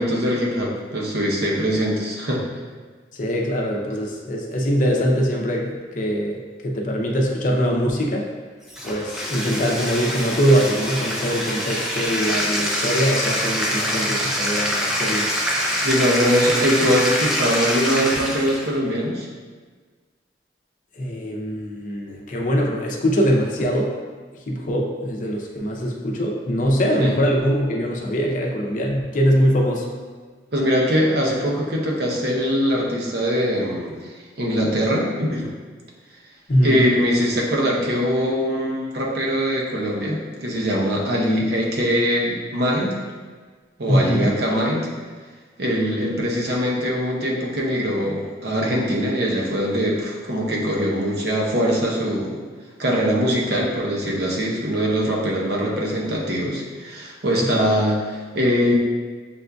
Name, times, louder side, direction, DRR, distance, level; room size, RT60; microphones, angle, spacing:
voice 1, 0.0-2.5 15.8-19.3 27.0-27.2 30.5-34.0 34.4-35.5 36.6-43.0 43.8-44.9 45.6-52.4 52.8-58.7, equal, 60° right, -3 dB, 0.8 m, -22 dB
voice 2, 3.1-8.3 8.8-15.3 20.9-23.9 24.5-29.9 36.5-36.8 43.9-44.3 57.4-57.7, equal, 45° left, -1 dB, 0.6 m, -22 dB
Bathtub (filling or washing), 8.7-18.7, equal, ahead, 0.4 m, -25 dB
6.7 x 2.5 x 2.3 m, 1.5 s
head